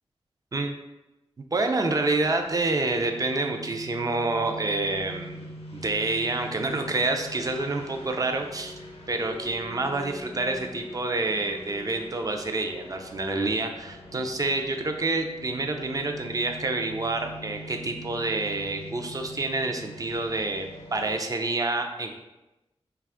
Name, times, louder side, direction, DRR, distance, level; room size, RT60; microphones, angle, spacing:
voice 1, 1.5-5.4 5.7-22.1, right 2 dB, 35° right, 4 dB, 0.4 m, -28 dB
sound 1, 2.2-21.2, equal, 90° left, 0.6 m, -43 dB
2.4 x 2.3 x 3.5 m, 1.0 s
cardioid pair, 55°, 11 cm